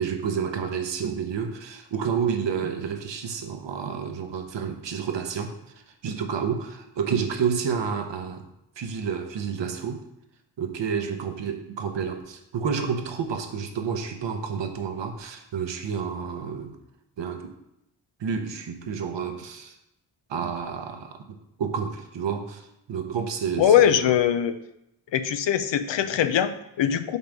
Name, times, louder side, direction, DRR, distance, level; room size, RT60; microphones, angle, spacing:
voice 1, 0.0-5.6 6.0-8.5 8.8-10.0 10.6-16.8 17.2-17.5 18.2-19.8 20.3-24.1, right 6 dB, 80° right, 6 dB, 0.9 m, -30 dB
voice 2, 23.6-24.5 25.1-27.2, left 9 dB, 90° left, 11 dB, 0.6 m, -21 dB
5.4 x 3.9 x 5.9 m, 0.83 s
wide cardioid pair, 90°, 43 cm